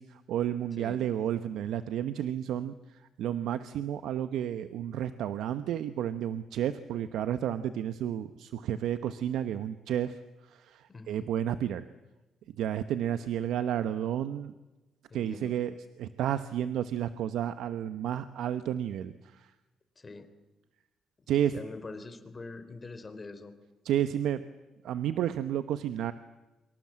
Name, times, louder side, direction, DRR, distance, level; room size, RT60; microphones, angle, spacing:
voice 1, 0.0-10.2 10.5-11.9 12.6-14.5 15.1-19.5 21.3-21.5 23.8-24.4 24.8-26.1, right 10 dB, 80° right, 11 dB, 1.1 m, -31 dB
voice 2, 10.9-11.3 15.1-15.6 20.0-20.3 21.2-23.5, left 3 dB, 30° left, 9 dB, 4.0 m, -44 dB
29.0 x 24.5 x 7.6 m, 1.1 s
cardioid pair, 75°, 0 cm